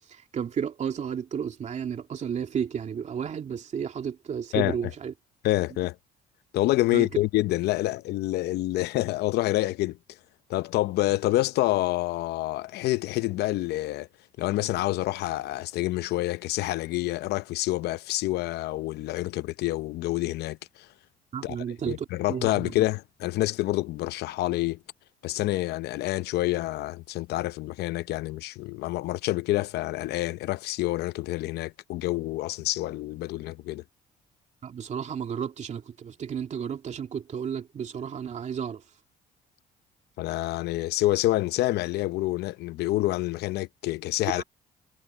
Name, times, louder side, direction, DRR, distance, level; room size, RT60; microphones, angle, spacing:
voice 1, 0.1-5.1 6.9-7.1 21.3-22.7 34.6-38.8 44.3-44.4, right 7 dB, 45° right, 2.7 m, -32 dB
voice 2, 5.4-6.0 6.5-10.0 10.5-14.1 14.4-20.9 21.4-21.6 21.9-24.8 25.2-33.8 40.2-44.4, left 17 dB, 75° left, 0.7 m, -27 dB
cardioid pair, 110°, 17 cm